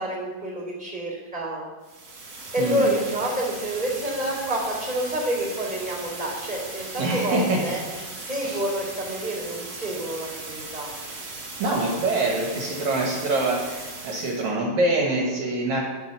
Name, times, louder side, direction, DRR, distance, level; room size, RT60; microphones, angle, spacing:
voice 1, 0.0-1.6 2.5-7.8 8.2-10.9, right 1 dB, ahead, -2 dB, 2.7 m, -28 dB
sound 1, 1.8-14.5, right 3 dB, 40° right, 2.6 m, -38 dB
voice 2, 2.6-2.9 7.0-7.6 8.4-8.6 11.6-15.8, right 2 dB, 60° right, -1 dB, 2.4 m, -25 dB
10.5 x 6.4 x 6.7 m, 1.3 s
omnidirectional pair, 4.0 m